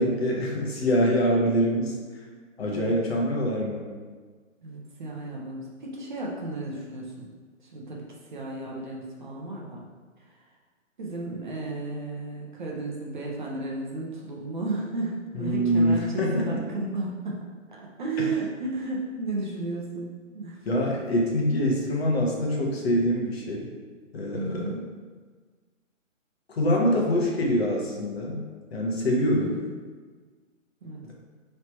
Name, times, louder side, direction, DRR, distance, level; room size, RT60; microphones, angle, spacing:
voice 1, 0.0-1.9 2.6-3.9 15.3-16.6 20.6-23.7 24.1-24.8 26.5-28.4 28.7-29.5 31.0-31.1, equal, 50° left, -1 dB, 0.9 m, -24 dB
voice 2, 4.6-7.3 7.6-9.8 10.2-10.4 11.0-17.5 17.8-20.6 24.3-24.8 29.4-29.6 30.8-31.0, right 2 dB, 40° right, -3 dB, 0.6 m, -33 dB
3.2 x 2.8 x 4.4 m, 1.4 s
hypercardioid pair, 150°, 39 cm